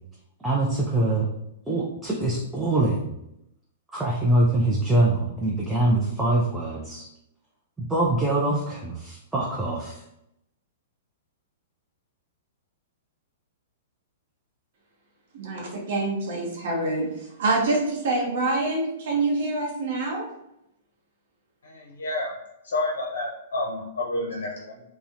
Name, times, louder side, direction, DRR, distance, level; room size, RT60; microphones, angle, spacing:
voice 1, 0.4-1.3 1.7-3.1 3.9-7.1 7.8-10.0, right 2 dB, 10° right, -5 dB, 0.4 m, -24 dB
voice 2, 15.3-20.3, right 2 dB, 65° right, -1 dB, 0.6 m, -26 dB
voice 3, 21.6-22.3 22.6-24.8, left 2 dB, 80° left, -2 dB, 0.5 m, -29 dB
2.7 x 2.0 x 2.4 m, 0.82 s
hypercardioid pair, 125°, 0 cm